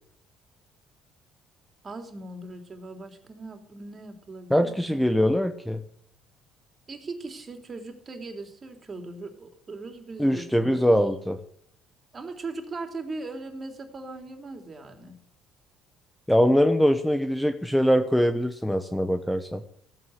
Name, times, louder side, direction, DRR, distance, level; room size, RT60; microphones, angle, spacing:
voice 1, 1.8-5.1 6.9-10.9 12.1-15.2, right 3 dB, 35° right, 5 dB, 3.3 m, -39 dB
voice 2, 4.5-5.8 10.2-11.4 16.3-19.6, equal, 5° left, 8 dB, 1.2 m, -22 dB
14.5 x 8.9 x 8.0 m, 0.64 s
supercardioid pair, 75°, 0 cm